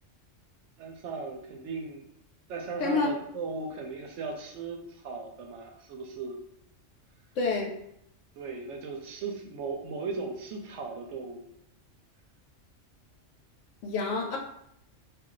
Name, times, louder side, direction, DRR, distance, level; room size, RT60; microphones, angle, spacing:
voice 1, 0.8-2.1 2.5-6.4 8.4-11.4, right 4 dB, 75° right, 3 dB, 0.9 m, -37 dB
voice 2, 7.4-7.7 13.8-14.4, left 4 dB, 80° left, 1 dB, 1.0 m, -27 dB
2.3 x 2.2 x 3.8 m, 0.76 s
omnidirectional pair, 1.3 m